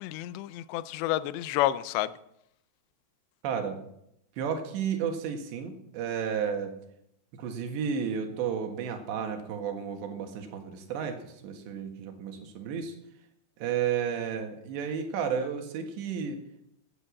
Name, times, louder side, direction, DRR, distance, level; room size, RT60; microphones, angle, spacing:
voice 1, 0.0-2.1, left 14 dB, 85° left, 2.8 m, -29 dB
voice 2, 3.4-3.8 4.4-6.8 7.3-13.0 13.6-16.4, right 7 dB, 80° right, 3.8 m, -32 dB
13.5 x 10.0 x 7.3 m
omnidirectional pair, 5.0 m